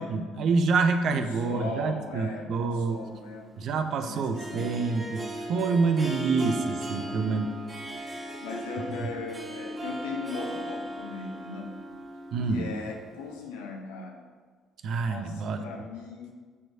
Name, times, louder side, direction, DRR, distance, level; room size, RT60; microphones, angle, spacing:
voice 1, 0.0-3.0 3.6-7.5 12.3-12.7 14.8-15.6, right 4 dB, 55° right, 7 dB, 0.5 m, -27 dB
voice 2, 1.1-3.5 4.0-4.8 5.5-5.8 6.9-7.5 8.4-11.8 12.5-14.3 15.1-16.3, left 4 dB, 70° left, 2 dB, 0.8 m, -39 dB
Harp, 3.0-13.4, right 1 dB, 30° right, 1.3 m, -38 dB
8.2 x 4.4 x 2.6 m, 1.5 s
figure-of-eight pair, 45°, 0 cm